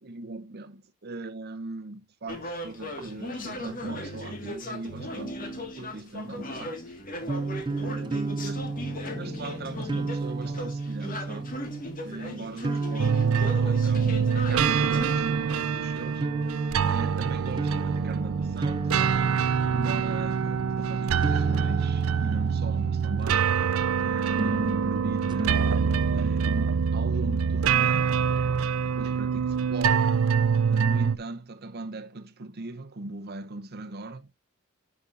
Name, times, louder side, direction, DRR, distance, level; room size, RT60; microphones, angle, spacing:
voice 1, 0.0-6.8 7.8-8.6 8.9-11.6 12.0-16.3 16.8-19.3 19.7-23.6 24.0-25.7 26.1-28.3 29.0-30.1 30.7-34.3, right 2 dB, 50° right, 0.8 m, -39 dB
sound 1, 2.3-15.1, left 1 dB, 45° left, 1.8 m, -37 dB
sound 2, 7.2-23.5 24.3-26.3, right 3 dB, 20° right, 0.4 m, -33 dB
sound 3, 13.0-31.2, right 6 dB, 80° right, 0.5 m, -25 dB
10.0 x 6.1 x 2.6 m
head